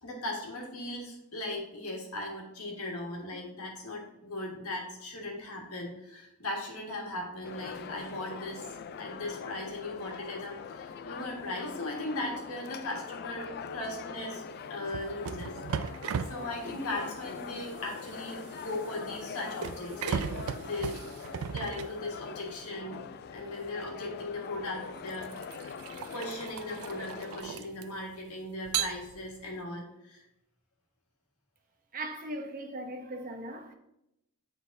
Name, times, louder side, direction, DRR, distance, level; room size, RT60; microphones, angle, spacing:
voice 1, 0.0-8.7 9.0-14.4 14.7-16.0 16.3-20.2 20.5-21.0 21.5-25.3 26.1-30.2, left 2 dB, 90° left, 1.6 m, -38 dB
sound 1, 7.4-27.4, left 6 dB, 45° left, 0.3 m, -43 dB
sound 2, 14.9-22.5 23.9-24.1 24.8-28.1 28.7-29.5, right 7 dB, 70° right, 0.3 m, -37 dB
voice 2, 31.9-33.7, right 1 dB, 40° right, 0.7 m, -38 dB
9.2 x 4.0 x 2.6 m
head